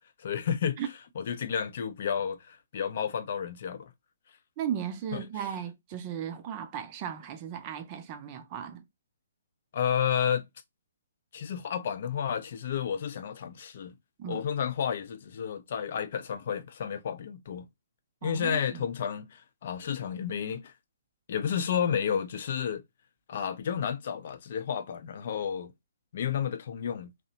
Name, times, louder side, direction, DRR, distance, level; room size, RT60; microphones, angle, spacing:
voice 1, 0.2-0.8 1.2-3.9 5.1-5.2 9.7-10.5 11.3-13.9 14.3-17.7 18.2-20.7 21.3-22.8 23.3-25.7 26.1-27.1, left 8 dB, 50° left, 0.4 m, -31 dB
voice 2, 4.6-8.9 14.2-14.5 18.2-18.9, right 9 dB, 30° right, 0.5 m, -36 dB
2.7 x 2.0 x 2.6 m
figure-of-eight pair, 130°, 0 cm